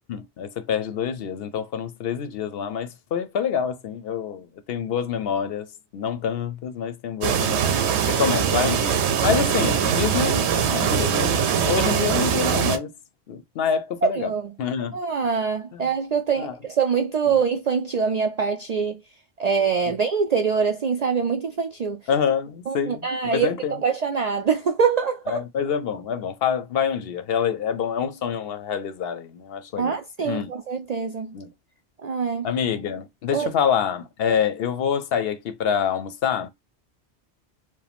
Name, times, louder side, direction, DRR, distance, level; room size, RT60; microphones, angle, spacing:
voice 1, 0.1-5.7 5.9-7.7 8.1-12.9 13.3-14.3 14.6-15.0 15.7-15.9 16.4-16.6 22.1-23.8 25.3-30.0 30.2-30.5 31.3-31.5 32.4-36.5, left 7 dB, 65° left, 0.8 m, -26 dB
sound 1, 7.2-12.8, right 8 dB, 80° right, 0.9 m, -22 dB
voice 2, 14.0-14.5 14.9-19.0 19.4-22.0 22.7-25.4 29.8-31.3 32.0-32.5 33.3-33.5, right 6 dB, 60° right, 0.4 m, -24 dB
4.8 x 2.2 x 3.4 m
omnidirectional pair, 1.1 m